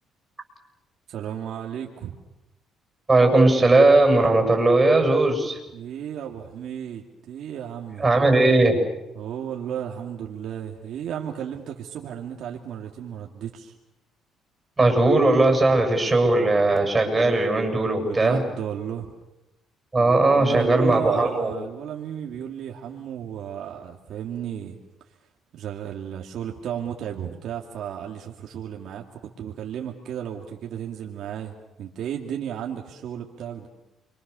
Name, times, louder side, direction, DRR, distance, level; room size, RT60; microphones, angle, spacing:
voice 1, 1.1-2.2 5.7-8.0 9.1-13.7 18.0-19.1 20.0-24.8 25.5-29.0 29.4-33.7, right 9 dB, 65° right, 1 dB, 2.6 m, -33 dB
voice 2, 3.1-5.6 8.0-8.8 14.8-18.4 19.9-21.5, right 2 dB, 20° right, 3 dB, 7.4 m, -18 dB
29.5 x 24.5 x 7.0 m, 0.97 s
cardioid pair, 110°, 0 cm